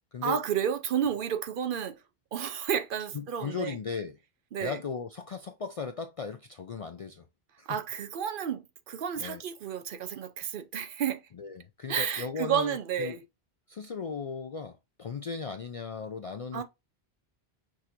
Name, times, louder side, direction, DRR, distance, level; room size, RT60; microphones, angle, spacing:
voice 1, 0.2-2.0 2.3-3.8 4.5-4.8 7.7-11.2 11.9-13.2 16.5-16.6, right 8 dB, 60° right, 0.7 m, -31 dB
voice 2, 3.1-4.2 4.6-7.2 7.6-7.8 9.2-9.4 11.3-13.2 13.7-16.6, left 5 dB, 60° left, 0.3 m, -37 dB
6.1 x 2.8 x 2.5 m
omnidirectional pair, 1.1 m